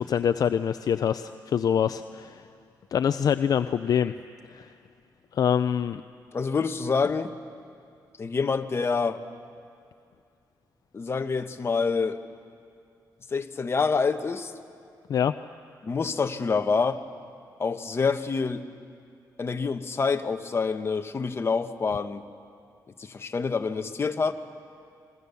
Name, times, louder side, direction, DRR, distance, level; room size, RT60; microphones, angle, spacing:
voice 1, 0.0-2.4 2.9-4.1 4.5-4.7 5.3-6.0 15.1-15.3, left 8 dB, 55° left, 10 dB, 0.5 m, -25 dB
voice 2, 6.3-7.3 8.2-9.2 10.9-12.2 13.3-14.5 15.8-17.0 17.6-18.6 19.4-22.2 23.0-24.3, left 5 dB, 35° left, 7 dB, 1.1 m, -27 dB
27.0 x 21.5 x 7.0 m, 2.4 s
cardioid pair, 105°, 7 cm